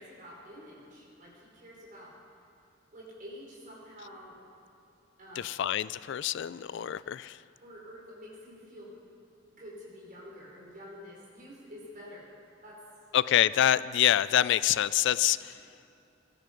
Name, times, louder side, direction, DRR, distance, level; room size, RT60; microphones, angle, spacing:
voice 1, 0.0-2.1 2.9-4.4 5.2-5.5 7.6-8.9 9.5-12.3 12.6-12.8 15.3-15.6, equal, 45° right, -4 dB, 4.8 m, -48 dB
voice 2, 5.4-7.4 13.1-15.5, left 11 dB, 65° left, 17 dB, 0.3 m, -26 dB
21.5 x 12.0 x 5.3 m, 2.8 s
head